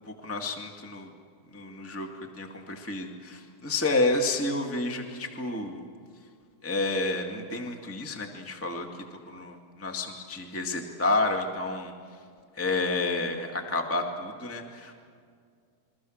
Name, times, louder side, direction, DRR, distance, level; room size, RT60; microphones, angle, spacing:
voice 1, 0.1-1.1 1.5-2.1 2.4-5.8 6.6-8.9 9.3-11.9 12.6-14.9, left 2 dB, 10° left, 3 dB, 0.6 m, -30 dB
28.0 x 23.5 x 6.5 m, 2.2 s
omnidirectional pair, 4.5 m